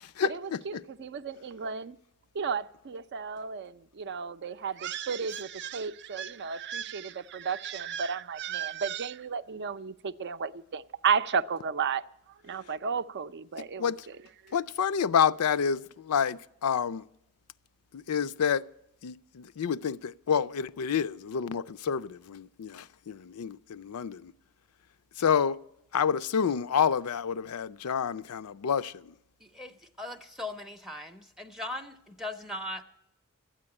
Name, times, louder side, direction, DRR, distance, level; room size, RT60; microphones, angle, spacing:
voice 1, 0.2-2.0 2.3-12.0 12.4-14.2 14.4-14.6, right 6 dB, 50° right, 0.5 m, -33 dB
voice 2, 14.5-17.0 18.1-18.6 19.0-24.3 25.2-25.6 25.9-28.9, left 7 dB, 80° left, 0.5 m, -28 dB
voice 3, 29.4-32.8, left 1 dB, ahead, 0.6 m, -39 dB
13.0 x 8.8 x 9.6 m
head